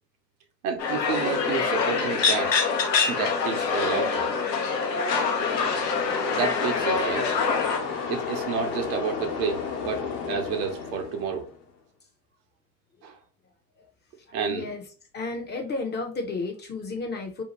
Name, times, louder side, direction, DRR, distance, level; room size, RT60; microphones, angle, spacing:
voice 1, 0.6-2.5 3.0-4.3 6.3-7.3 8.1-11.5 13.0-13.2 14.3-14.7, right 6 dB, 65° right, 0.8 m, -30 dB
sound 1, 0.8-7.8, left 5 dB, 85° left, 0.7 m, -25 dB
sound 2, 5.4-11.7, left 5 dB, 70° left, 1.0 m, -33 dB
voice 2, 14.3-14.8 15.1-17.4, left 3 dB, 20° left, 0.5 m, -32 dB
2.8 x 2.2 x 2.9 m
figure-of-eight pair, 70°, 48 cm